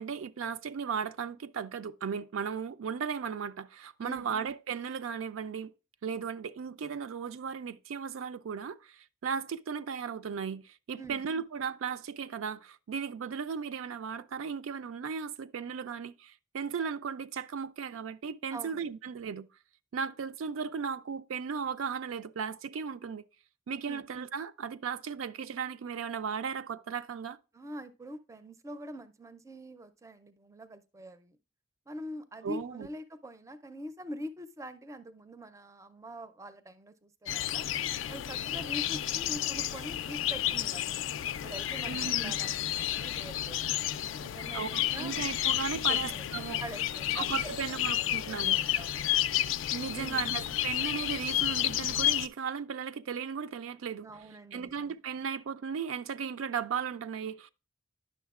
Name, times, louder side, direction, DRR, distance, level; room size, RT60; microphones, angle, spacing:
voice 1, 0.0-5.7 6.0-19.5 19.9-23.2 23.7-27.4 32.4-32.9 41.8-42.3 44.5-46.6 47.2-48.6 49.7-54.1 54.5-57.5, right 6 dB, 85° right, 0.4 m, -36 dB
voice 2, 4.0-4.3 11.0-11.3 18.5-18.9 23.9-24.1 27.5-31.4 31.9-37.7 38.1-41.0 41.3-43.7 44.1-45.2 45.7-46.3 46.6-47.4 47.7-49.0 49.9-50.3 54.0-55.0, equal, 15° right, 0.4 m, -44 dB
sound 1, 37.3-52.3, left 12 dB, 70° left, 0.3 m, -31 dB
10.0 x 6.3 x 2.4 m
head